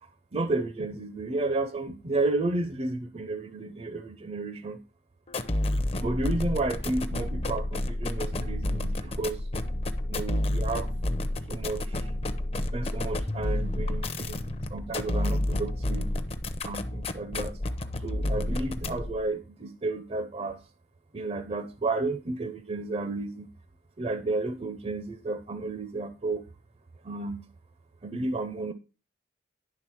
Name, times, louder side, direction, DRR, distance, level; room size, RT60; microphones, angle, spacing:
voice 1, 0.0-4.8 6.0-9.5 10.1-10.9 11.5-12.1 12.6-14.4 14.7-16.1 16.6-17.6 18.0-20.6 21.1-23.5 24.0-26.4 27.0-27.4 28.0-28.7, right 2 dB, 35° right, 0.5 m, -32 dB
sound 1, 5.3-19.2, left 1 dB, 35° left, 0.7 m, -30 dB
10.5 x 3.7 x 6.1 m
head